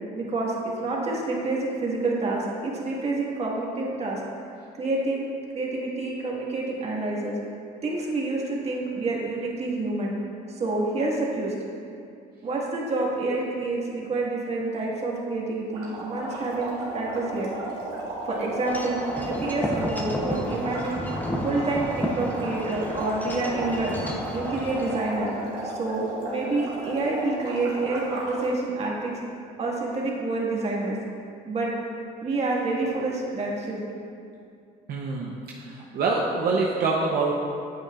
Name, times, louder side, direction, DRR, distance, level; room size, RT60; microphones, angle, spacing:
voice 1, 0.1-4.2 4.8-5.3 5.5-7.4 7.8-10.1 10.5-11.5 12.4-17.5 18.2-21.0 21.4-23.9 24.3-25.3 25.6-29.1 29.6-31.0 31.4-31.7 32.2-33.8, right 2 dB, 40° right, -3 dB, 1.7 m, -28 dB
sound 1, 15.7-28.5, right 1 dB, 85° right, 1.9 m, -35 dB
Wind chime / Wind, 18.7-25.0, equal, 10° left, 0.8 m, -32 dB
voice 2, 34.9-35.3 35.6-37.3, right 3 dB, 65° right, -2 dB, 0.8 m, -25 dB
8.8 x 8.4 x 2.4 m, 2.4 s
cardioid pair, 110°, 17 cm